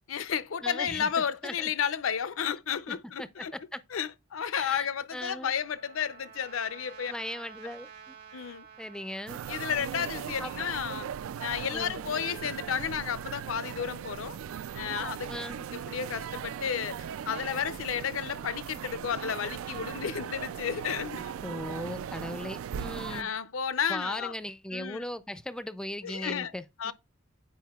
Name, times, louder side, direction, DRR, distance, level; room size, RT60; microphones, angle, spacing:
voice 1, 0.1-3.5 3.9-7.1 8.3-8.7 9.5-11.1 11.4-14.4 14.7-15.3 15.7-16.9 17.3-21.3 23.1-24.3 24.7-25.0 26.0-26.5 26.8-26.9, left 7 dB, 75° left, 0.5 m, -32 dB
voice 2, 0.6-1.1 1.4-1.7 2.9-3.8 4.5-5.5 7.1-8.2 8.8-9.4 10.4-10.5 11.7-12.0 15.3-15.7 21.4-23.3 23.9-26.9, left 1 dB, 5° left, 0.4 m, -38 dB
Trumpet, 4.9-9.5, right 7 dB, 50° right, 1.4 m, -51 dB
sound 1, 9.3-23.2, right 8 dB, 80° right, 0.3 m, -38 dB
9.2 x 4.9 x 2.3 m
head